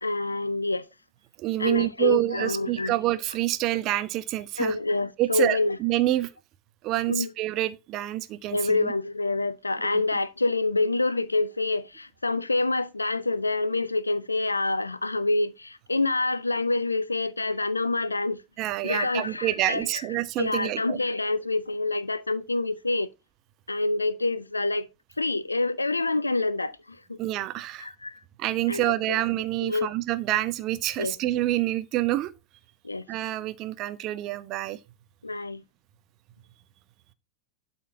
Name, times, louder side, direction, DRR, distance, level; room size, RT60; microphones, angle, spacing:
voice 1, 0.0-0.9 1.6-2.9 4.6-5.8 7.1-7.3 8.5-18.4 18.8-19.9 20.4-23.1 23.7-24.9 25.2-27.2 27.8-28.2 28.7-29.2 29.6-29.9 31.0-31.2 32.8-33.1 35.2-35.6, left 2 dB, 80° left, 0.7 m, -27 dB
voice 2, 1.4-4.7 5.2-6.3 6.8-8.8 9.8-10.0 18.6-21.0 27.2-27.9 28.4-32.3 33.1-34.8, right 15 dB, 35° right, 1.1 m, -27 dB
12.0 x 4.3 x 5.6 m
figure-of-eight pair, 90°, 0 cm